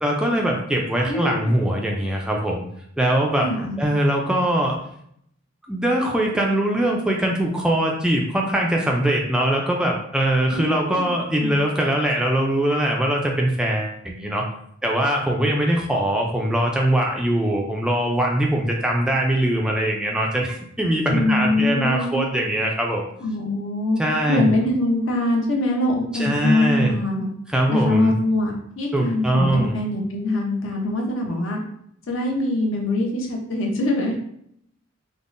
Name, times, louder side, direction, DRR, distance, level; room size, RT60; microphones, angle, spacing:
voice 1, 0.0-2.6 3.0-3.5 3.8-4.8 5.7-14.4 14.8-23.1 24.0-24.5 26.1-26.9 27.5-28.1 28.9-29.8, right 1 dB, 5° right, -1 dB, 0.3 m, -22 dB
voice 2, 1.1-1.5 3.4-3.8 10.5-11.1 11.4-11.5 21.1-22.3 23.2-27.3 27.7-31.6 32.1-34.1, left 1 dB, 70° left, 0 dB, 0.7 m, -23 dB
3.5 x 2.1 x 2.5 m, 0.70 s
head